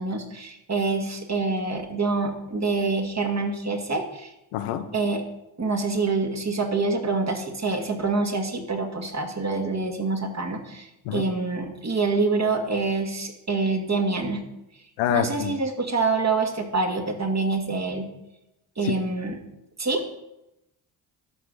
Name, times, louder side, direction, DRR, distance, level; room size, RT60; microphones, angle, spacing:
voice 1, 0.0-4.3 4.9-5.2 5.6-14.4 15.1-18.1 18.8-19.4 19.8-20.0, right 3 dB, 35° right, 3 dB, 2.4 m, -26 dB
voice 2, 4.5-4.9 11.0-11.2 15.0-15.5 18.8-18.9, left 11 dB, 90° left, 9 dB, 0.9 m, -26 dB
12.0 x 5.2 x 6.3 m, 0.90 s
supercardioid pair, 50°, 48 cm